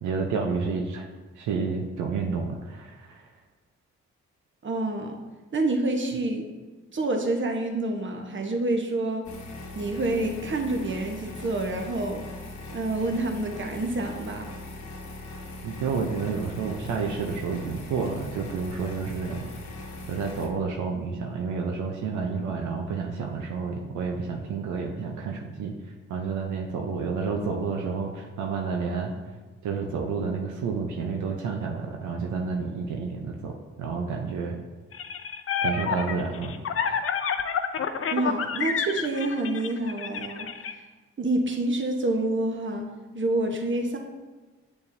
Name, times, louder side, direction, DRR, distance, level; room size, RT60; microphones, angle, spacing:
voice 1, 0.0-1.1 1.4-3.3 15.6-19.5 20.1-29.1 29.6-33.5 33.8-34.6 35.6-36.5 36.8-37.0, right 5 dB, 80° right, 1 dB, 0.7 m, -30 dB
voice 2, 4.6-5.2 5.5-6.4 6.9-9.3 9.7-12.2 12.7-14.5 20.0-20.1 38.1-40.8 41.2-42.9 43.1-44.0, right 2 dB, 40° right, 2 dB, 1.1 m, -28 dB
sound 1, 9.2-20.5, left 2 dB, 75° left, 1.2 m, -40 dB
sound 2, 34.9-40.7, left 7 dB, 50° left, 0.6 m, -29 dB
6.9 x 6.9 x 2.7 m, 1.3 s
supercardioid pair, 50°, 30 cm